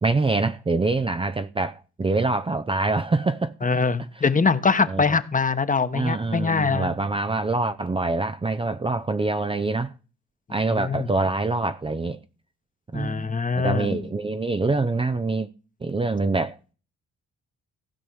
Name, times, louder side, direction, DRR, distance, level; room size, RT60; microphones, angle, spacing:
voice 1, 0.0-3.5 4.9-5.2 5.9-9.9 10.5-12.2 12.9-13.3 13.5-15.5 15.8-16.6, right 3 dB, 20° right, 0.6 m, -25 dB
voice 2, 3.6-6.9 10.7-11.1 12.9-14.0, left 5 dB, 25° left, 1.2 m, -23 dB
16.0 x 5.4 x 6.2 m
cardioid pair, 90°, 30 cm